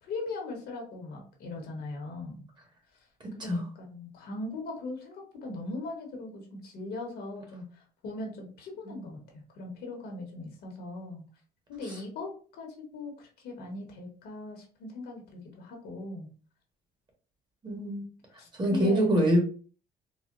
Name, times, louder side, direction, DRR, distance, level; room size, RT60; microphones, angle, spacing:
voice 1, 0.0-2.4 3.4-11.2 11.7-16.3 18.4-19.4, left 2 dB, 70° left, 1 dB, 1.2 m, -39 dB
voice 2, 17.6-18.0 18.6-19.4, equal, 25° right, 1 dB, 1.4 m, -24 dB
4.1 x 2.2 x 2.5 m, 0.40 s
cardioid pair, 110°, 17 cm